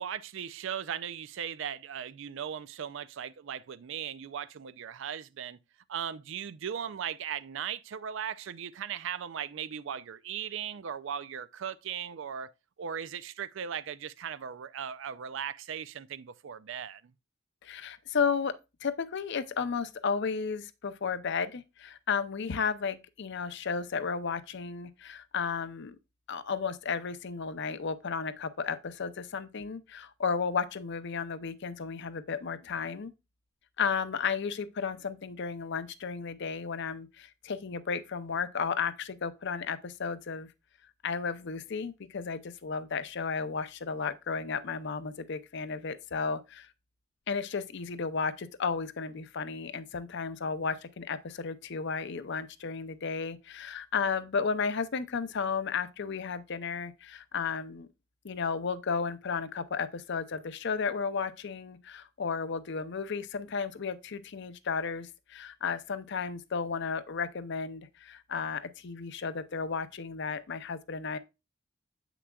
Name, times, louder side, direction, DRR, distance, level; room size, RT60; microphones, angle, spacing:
voice 1, 0.0-5.6 5.9-12.5 12.8-17.1, right 8 dB, 65° right, 0.4 m, -38 dB
voice 2, 17.6-18.5 18.8-26.0 26.3-33.1 33.8-40.5 41.0-46.7 47.3-57.9 58.2-71.2, left 5 dB, 60° left, 0.6 m, -33 dB
8.1 x 6.0 x 2.3 m
head